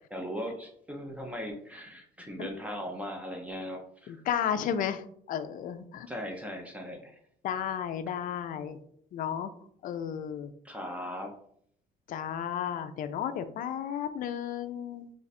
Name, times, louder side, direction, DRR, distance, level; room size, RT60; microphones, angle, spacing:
voice 1, 0.1-4.2 6.1-7.2 10.6-11.3, equal, 10° right, 2 dB, 0.6 m, -38 dB
voice 2, 4.1-6.1 7.4-8.8 9.1-9.5 9.8-10.5 12.1-15.1, left 9 dB, 55° left, 9 dB, 0.4 m, -33 dB
3.2 x 2.4 x 4.1 m, 0.65 s
cardioid pair, 110°, 17 cm